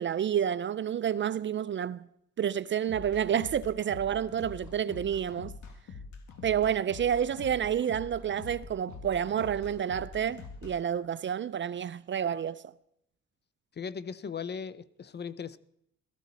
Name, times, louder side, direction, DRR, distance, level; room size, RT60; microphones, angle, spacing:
voice 1, 0.0-2.1 2.4-5.5 6.4-12.7, right 9 dB, 40° right, 0.4 m, -29 dB
sound 1, 2.9-10.7, left 4 dB, 70° left, 2.1 m, -45 dB
voice 2, 13.8-15.6, left 6 dB, 35° left, 0.6 m, -38 dB
17.0 x 14.0 x 4.1 m
cardioid pair, 90°, 30 cm